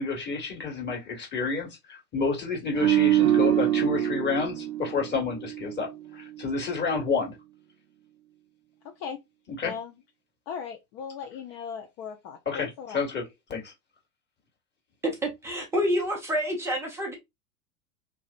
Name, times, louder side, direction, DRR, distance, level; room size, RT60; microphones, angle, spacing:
voice 1, 0.0-7.4 9.5-9.7 12.4-13.7, left 4 dB, 20° left, 1.4 m, -30 dB
sound 1, 2.7-6.0 6.3-6.6, right 12 dB, 60° right, 0.5 m, -25 dB
voice 2, 8.8-9.2 9.6-9.9 10.5-13.0, left 7 dB, 40° left, 0.6 m, -38 dB
voice 3, 15.0-17.1, equal, 5° right, 0.3 m, -28 dB
3.3 x 2.4 x 2.4 m
figure-of-eight pair, 95°, 47 cm